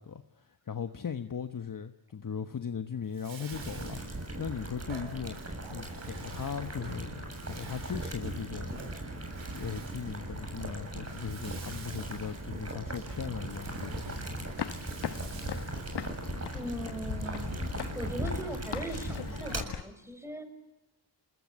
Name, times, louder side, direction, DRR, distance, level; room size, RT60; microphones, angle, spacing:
voice 1, 0.0-5.4 5.7-9.0 9.5-14.5, left 7 dB, 45° left, 8 dB, 1.3 m, -38 dB
Bathtub (filling or washing), 3.0-18.2, right 5 dB, 90° right, 5.0 m, -51 dB
Boiling, 3.5-19.6, right 1 dB, 35° right, 7.9 m, -39 dB
sound 1, 14.4-19.8, left 9 dB, 65° left, 1.0 m, -40 dB
voice 2, 16.5-17.6 17.9-20.4, right 1 dB, 5° right, 8 dB, 6.7 m, -39 dB
29.0 x 20.5 x 9.6 m, 0.92 s
cardioid pair, 60°, 45 cm